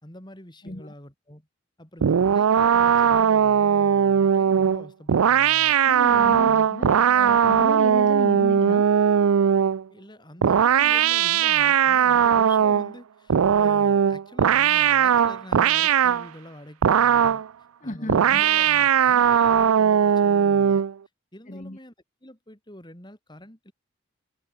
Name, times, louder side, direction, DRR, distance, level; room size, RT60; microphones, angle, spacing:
voice 1, 0.0-1.5 1.8-5.7 6.2-7.1 9.9-17.4 17.8-20.9 21.3-21.9 22.2-23.7, left 1 dB, 20° left, 4.5 m, -45 dB
voice 2, 0.6-0.9 5.8-8.9 17.8-18.7 19.1-19.3 21.5-21.8, left 1 dB, 35° left, 1.6 m, -34 dB
sound 1, 2.0-9.8 10.4-12.9 13.3-16.3 16.8-17.5 18.1-20.9, right 8 dB, 85° right, 0.4 m, -19 dB
head